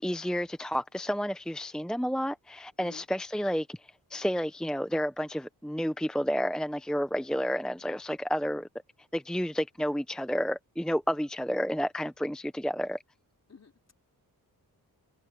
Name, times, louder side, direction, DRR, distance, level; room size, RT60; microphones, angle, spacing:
voice 1, 0.0-3.8 4.1-8.7 9.1-13.0, equal, ahead, 0.8 m, -30 dB
voice 2, 13.5-13.9, left 4 dB, 45° left, 4.0 m, -50 dB
wide cardioid pair, 90°, 37 cm